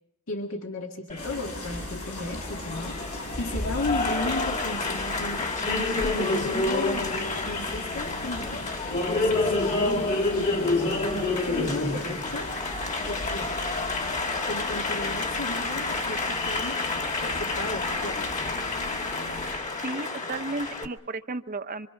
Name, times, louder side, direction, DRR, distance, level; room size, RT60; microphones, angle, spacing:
voice 1, 0.3-5.5 6.0-8.7 9.1-10.5 11.5-12.6 13.0-13.6 14.5-16.9 17.2-18.6, left 2 dB, 65° left, 3 dB, 1.9 m, -35 dB
Applause, 1.1-20.9, left 2 dB, 35° left, 2.0 m, -29 dB
sound 1, 1.2-19.5, left 1 dB, 85° left, 7.9 m, -39 dB
voice 2, 19.8-21.9, right 2 dB, 40° right, 9 dB, 1.0 m, -33 dB
26.5 x 25.5 x 5.9 m, 0.71 s
head